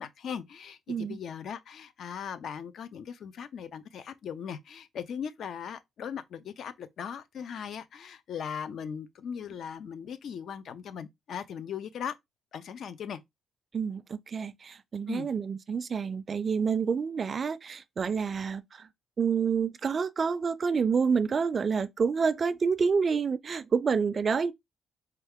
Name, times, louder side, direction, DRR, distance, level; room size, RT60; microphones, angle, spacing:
voice 1, 0.0-12.1 12.5-13.2 15.1-15.3, left 7 dB, 65° left, 0.5 m, -39 dB
voice 2, 0.9-1.2 13.7-18.9 19.2-24.5, right 5 dB, 40° right, 0.4 m, -28 dB
4.3 x 2.3 x 3.5 m
cardioid pair, 90°, 0 cm